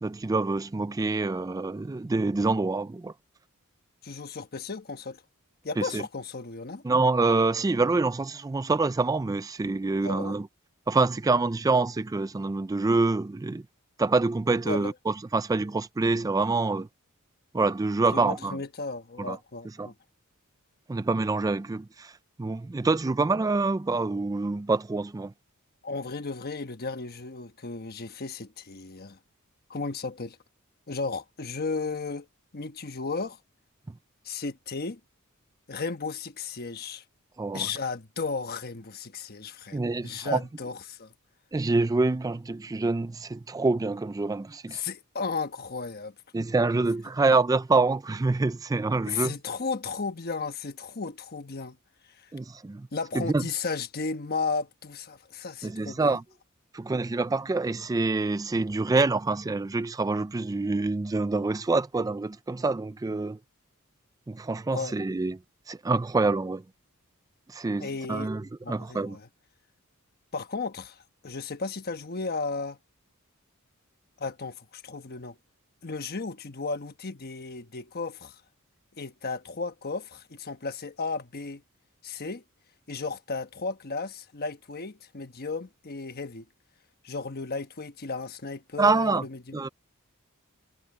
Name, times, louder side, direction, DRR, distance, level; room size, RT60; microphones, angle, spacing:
voice 1, 0.0-3.1 5.8-6.0 6.8-10.5 10.9-13.6 14.0-16.9 17.5-18.6 19.2-19.4 19.8-19.9 20.9-22.1 22.4-25.3 37.4-37.7 39.7-40.4 41.5-44.8 46.3-49.3 52.3-52.9 53.1-53.4 55.6-56.2 56.7-63.4 64.3-65.4 65.7-66.6 67.5-69.2 88.8-89.2 89.5-89.7, right 3 dB, 15° right, 0.3 m, -26 dB
voice 2, 4.0-5.2 5.6-6.8 10.0-10.4 14.6-14.9 18.1-19.9 25.8-29.2 29.7-30.4 30.9-32.3 32.5-33.4 34.2-35.0 35.7-37.0 37.5-41.1 44.7-46.1 49.0-51.8 52.2-52.3 52.9-56.2 64.7-64.9 67.8-68.3 68.6-69.3 70.3-72.8 74.2-75.4 75.8-78.3 79.0-81.6 82.0-82.4 82.9-86.5 87.0-89.6, left 4 dB, 45° left, 1.2 m, -34 dB
head